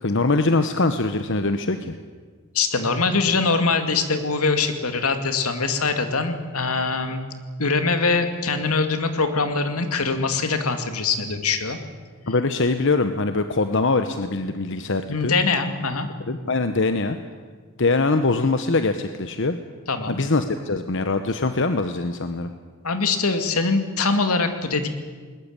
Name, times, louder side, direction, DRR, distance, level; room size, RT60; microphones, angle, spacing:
voice 1, 0.0-2.0 12.3-15.3 16.3-17.2 17.8-19.6 20.1-22.5, left 3 dB, 55° left, 9 dB, 1.0 m, -23 dB
voice 2, 2.5-7.2 7.6-11.8 15.1-16.1 19.9-20.2 22.8-24.9, left 4 dB, 80° left, 7 dB, 2.4 m, -23 dB
20.5 x 20.5 x 8.9 m, 1.5 s
head